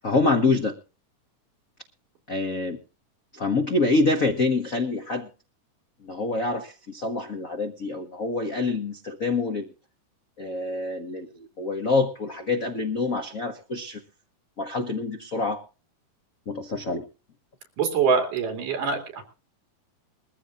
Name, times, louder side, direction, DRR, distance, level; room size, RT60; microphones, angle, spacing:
voice 1, 0.0-0.7 2.3-2.8 3.3-5.3 6.0-9.7 10.4-11.3 11.6-14.0 14.6-15.6 16.5-17.0, left 3 dB, 90° left, 5 dB, 0.7 m, -26 dB
voice 2, 17.8-19.2, right 5 dB, 80° right, 4 dB, 4.3 m, -24 dB
22.0 x 14.5 x 2.5 m, 0.33 s
omnidirectional pair, 3.7 m